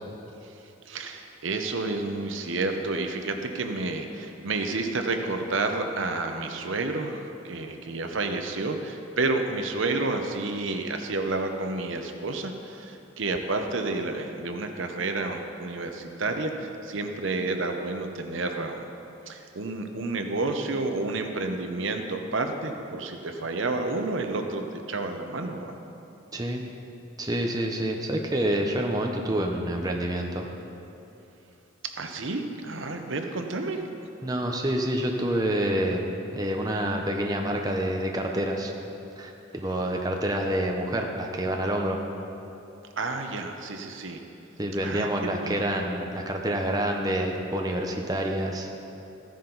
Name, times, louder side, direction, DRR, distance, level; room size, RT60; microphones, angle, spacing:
voice 1, 0.9-18.8 19.3-25.8 32.0-33.8 43.0-44.2 44.8-45.6, right 3 dB, 70° right, 5 dB, 0.8 m, -30 dB
voice 2, 26.3-26.6 27.2-30.5 34.2-36.1 36.3-38.7 39.2-42.0 44.6-48.7, right 1 dB, 20° right, 1 dB, 0.7 m, -27 dB
14.5 x 10.0 x 4.0 m, 2.9 s
head